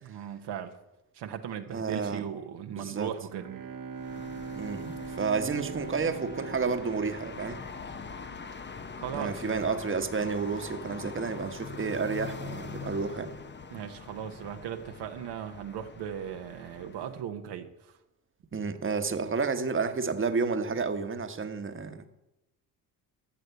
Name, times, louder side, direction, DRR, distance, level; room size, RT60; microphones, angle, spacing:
voice 1, 0.0-0.8 1.1-3.5 9.0-9.6 13.7-18.0, right 9 dB, 65° right, 1.1 m, -38 dB
voice 2, 1.7-2.2 2.8-3.1 4.5-7.6 9.1-13.3 18.5-22.1, right 5 dB, 30° right, 1.3 m, -31 dB
Bowed string instrument, 3.2-8.4, right 4 dB, 50° right, 1.2 m, -41 dB
sound 1, 3.9-17.2, left 5 dB, 25° left, 0.9 m, -43 dB
13.0 x 6.6 x 8.1 m
supercardioid pair, 70°, 44 cm